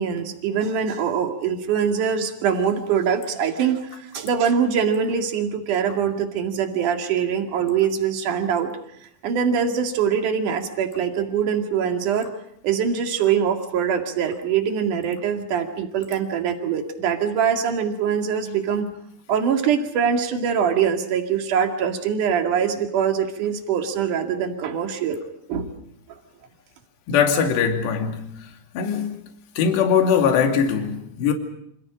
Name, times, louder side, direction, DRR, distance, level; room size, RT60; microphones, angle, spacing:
voice 1, 0.0-3.8 4.1-8.7 9.2-12.3 12.6-18.9 19.3-25.2 25.5-25.7, right 7 dB, 50° right, 3.0 m, -23 dB
voice 2, 27.1-28.3 28.7-29.2 29.6-31.3, left 7 dB, 60° left, 4.6 m, -21 dB
29.0 x 26.5 x 5.2 m
omnidirectional pair, 5.8 m